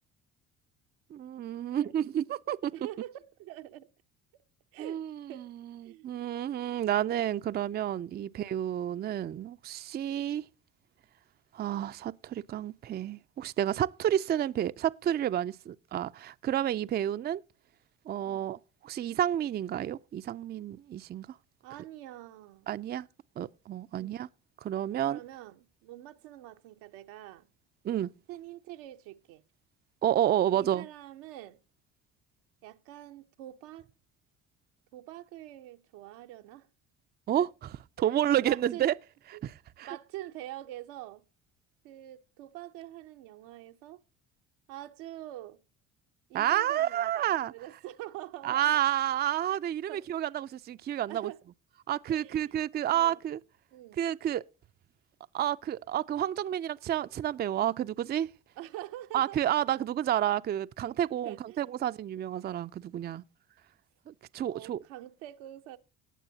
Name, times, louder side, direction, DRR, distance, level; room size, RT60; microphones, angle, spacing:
voice 1, 1.1-2.7 4.8-10.4 11.5-17.4 18.1-18.6 18.8-21.3 22.7-23.1 23.4-24.3 24.6-25.2 27.8-28.1 30.0-30.9 37.3-37.5 38.0-38.9 39.4-39.5 39.8-39.9 46.3-47.5 48.4-51.3 51.9-53.4 54.0-54.4 55.3-58.3 59.1-63.2 64.1-64.8, right 11 dB, 30° right, 0.4 m, -30 dB
voice 2, 2.7-3.9 4.3-4.4 4.7-5.0 5.3-5.5 5.8-6.2 8.2-8.4 18.2-18.5 21.6-22.7 24.0-24.3 25.1-27.5 28.3-29.4 30.4-31.6 32.6-33.9 34.9-36.7 37.4-37.5 38.0-38.9 39.3-39.4 39.8-41.2 41.8-44.0 44.7-45.6 46.3-48.8 49.9-50.0 51.1-51.4 52.1-52.5 52.9-53.2 53.7-54.0 58.6-59.4 59.8-59.9 61.1-61.6 64.5-65.8, right 14 dB, 90° right, 0.8 m, -45 dB
18.5 x 6.9 x 2.7 m
supercardioid pair, 80°, 33 cm